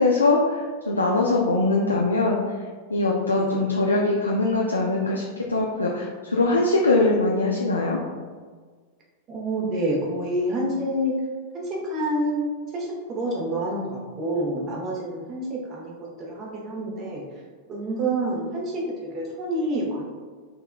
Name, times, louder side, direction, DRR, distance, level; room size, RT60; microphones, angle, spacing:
voice 1, 0.0-2.4 2.9-5.2 5.5-8.0, left 2 dB, 80° left, -2 dB, 0.3 m, -22 dB
voice 2, 3.3-3.7 9.3-11.1 11.5-17.2 17.7-20.0, right 1 dB, 30° right, -3 dB, 0.9 m, -28 dB
3.4 x 3.3 x 2.2 m, 1.5 s
figure-of-eight pair, 90°, 0 cm